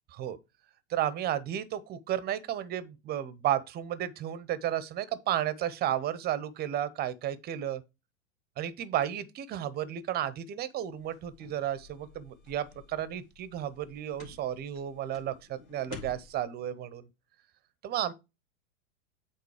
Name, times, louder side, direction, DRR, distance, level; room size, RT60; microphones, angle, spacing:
voice 1, 0.9-7.8 8.6-17.1 17.8-18.1, right 11 dB, 25° right, 0.7 m, -33 dB
sound 1, 10.9-16.4, left 4 dB, 90° left, 2.2 m, -51 dB
8.2 x 3.8 x 4.9 m
hypercardioid pair, 105°, 39 cm